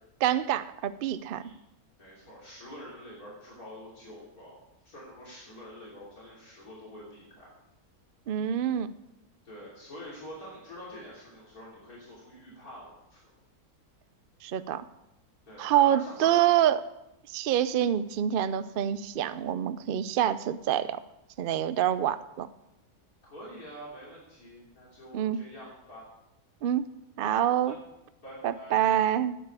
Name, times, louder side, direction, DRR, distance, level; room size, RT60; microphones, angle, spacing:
voice 1, 0.2-1.4 8.3-8.9 14.4-14.8 15.6-16.8 17.3-21.0 21.4-22.5 25.1-25.4 26.6-26.9 27.2-27.7 28.4-29.4, right 11 dB, 75° right, 14 dB, 0.5 m, -26 dB
voice 2, 2.0-4.6 4.8-7.5 9.4-13.3 15.5-16.6 23.2-26.0 27.3-27.8 28.2-28.9, equal, 70° left, -6 dB, 3.7 m, -46 dB
8.9 x 8.9 x 8.2 m, 0.90 s
omnidirectional pair, 1.6 m